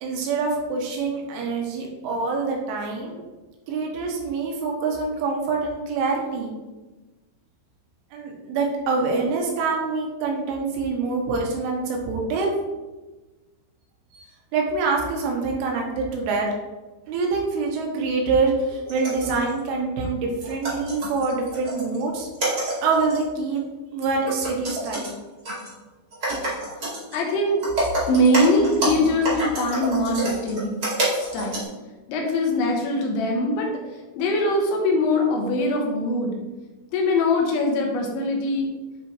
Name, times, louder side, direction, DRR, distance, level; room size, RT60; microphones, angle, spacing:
voice 1, 0.0-3.2 3.7-6.5 8.1-12.5 14.1-14.3 14.5-16.5 17.1-22.3 22.8-23.6 23.9-25.1, right 4 dB, 80° right, 0 dB, 3.4 m, -25 dB
sound 1, 18.7-19.6 20.0-20.1 20.4-22.0 22.3-23.2 23.5-23.6 24.0-25.1 25.4-25.7 26.1-27.2 27.5-31.6, right 1 dB, 40° right, 1.3 m, -28 dB
voice 2, 27.1-27.7 28.1-30.7 31.1-31.7 32.1-36.3 36.9-38.7, left 1 dB, 75° left, 1 dB, 3.2 m, -22 dB
11.0 x 3.7 x 3.1 m, 1.2 s
omnidirectional pair, 5.9 m